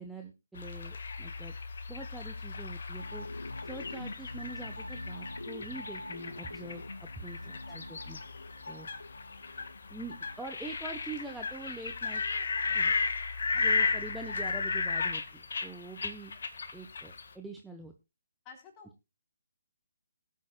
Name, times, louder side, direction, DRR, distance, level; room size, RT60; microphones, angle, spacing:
voice 1, 0.0-1.5 1.9-3.3 3.6-8.2 8.7-8.9 9.9-12.2 12.7-12.9 13.6-16.3 16.7-17.9, right 3 dB, 5° right, 3 dB, 0.9 m, -44 dB
sound 1, 0.6-17.3, left 4 dB, 60° left, 1.6 m, -35 dB
sound 2, 3.0-12.3 12.6-12.8, left 1 dB, 90° left, 0.6 m, -45 dB
voice 2, 7.4-8.0 13.5-14.0 18.4-19.1, left 5 dB, 20° left, 2 dB, 3.5 m, -53 dB
19.5 x 8.4 x 2.3 m, 0.25 s
figure-of-eight pair, 140°, 0 cm